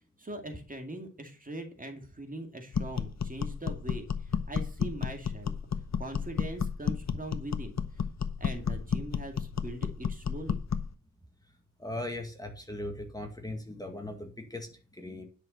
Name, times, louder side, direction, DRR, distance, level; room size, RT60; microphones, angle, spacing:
voice 1, 0.2-5.5 6.0-8.0 8.4-10.6, right 1 dB, 25° right, 4 dB, 2.2 m, -41 dB
sound 1, 2.7-10.9, left 7 dB, 60° left, 0.9 m, -32 dB
voice 2, 11.8-15.2, left 1 dB, 10° left, 3 dB, 1.9 m, -39 dB
10.5 x 6.2 x 5.6 m, 0.37 s
wide cardioid pair, 125°, 31 cm